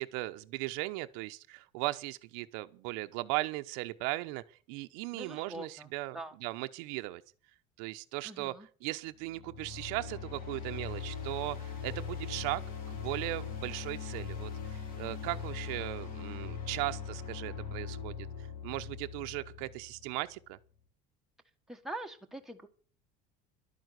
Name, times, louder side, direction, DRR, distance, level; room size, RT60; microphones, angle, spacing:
voice 1, 0.0-7.2 7.8-8.5 8.8-12.6 12.9-18.3 18.6-20.6, right 20 dB, 85° right, 1.0 m, -37 dB
voice 2, 5.1-5.9 6.1-6.4 8.2-8.7 21.7-22.7, right 1 dB, ahead, 1.5 m, -43 dB
sound 1, 9.2-20.3, left 6 dB, 45° left, 4.4 m, -41 dB
12.0 x 9.2 x 8.3 m
cardioid pair, 150°, 19 cm